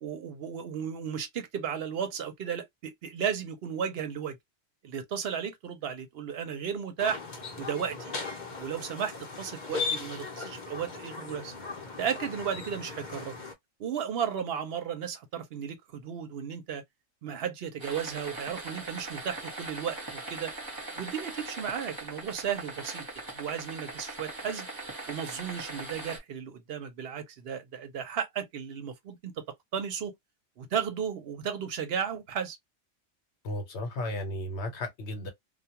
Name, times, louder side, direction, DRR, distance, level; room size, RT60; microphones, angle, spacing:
voice 1, 0.0-4.4 4.8-7.2 7.6-8.1 8.6-9.1 9.4-11.5 12.0-13.3 13.8-16.8 17.2-20.5 21.0-24.7 25.1-29.3 29.7-30.1 30.6-32.6, right 8 dB, 60° right, 0.8 m, -34 dB
sound 1, 7.0-13.5, left 4 dB, 45° left, 0.8 m, -38 dB
sound 2, 17.8-26.2, right 2 dB, 20° right, 0.9 m, -40 dB
voice 2, 33.4-35.3, left 1 dB, 65° left, 1.0 m, -34 dB
2.3 x 2.2 x 2.8 m
omnidirectional pair, 1.3 m